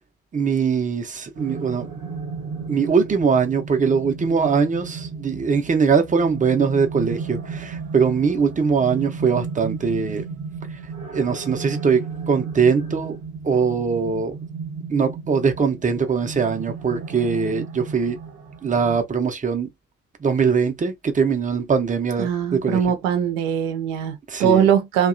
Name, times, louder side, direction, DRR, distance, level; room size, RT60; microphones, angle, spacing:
voice 1, 0.3-1.9 2.7-10.2 11.1-13.2 13.4-14.4 14.9-18.2 18.6-19.7 20.2-22.8 24.3-24.7, right 5 dB, 20° right, 0.7 m, -21 dB
sound 1, 1.3-19.0, right 5 dB, 40° right, 1.0 m, -34 dB
voice 2, 22.2-25.1, right 8 dB, 65° right, 0.7 m, -21 dB
2.7 x 2.2 x 2.5 m
figure-of-eight pair, 45°, 39 cm